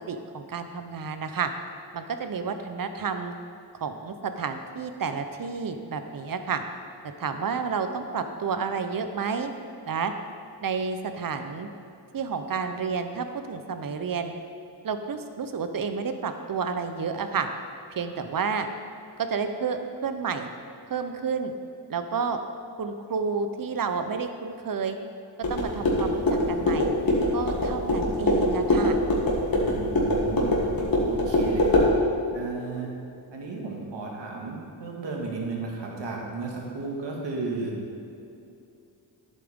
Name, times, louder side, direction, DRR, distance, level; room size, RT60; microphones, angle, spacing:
voice 1, 0.0-1.5 1.9-3.3 3.8-6.6 7.2-9.5 9.8-10.1 10.6-11.7 12.1-14.3 14.8-17.5 17.9-18.7 19.2-20.5 20.9-21.5 21.9-22.4 22.8-25.0 25.5-26.9 27.3-29.0, right 5 dB, 50° right, 8 dB, 0.8 m, -30 dB
sound 1, 25.4-31.9, left 1 dB, 50° left, 2.2 m, -23 dB
voice 2, 29.6-30.6 31.1-31.9 32.3-32.9 33.3-37.7, right 3 dB, 70° right, -1 dB, 1.9 m, -34 dB
11.0 x 8.3 x 3.7 m, 2.7 s
cardioid pair, 80°, 44 cm